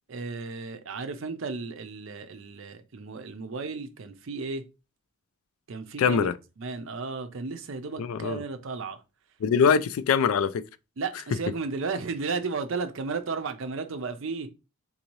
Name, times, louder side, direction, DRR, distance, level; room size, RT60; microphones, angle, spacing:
voice 1, 0.1-4.6 5.7-6.3 6.6-9.0 11.0-14.5, right 4 dB, 65° right, 0.5 m, -34 dB
voice 2, 6.0-6.3 8.0-8.4 9.4-10.6, left 6 dB, 80° left, 0.3 m, -23 dB
3.8 x 2.7 x 3.0 m
head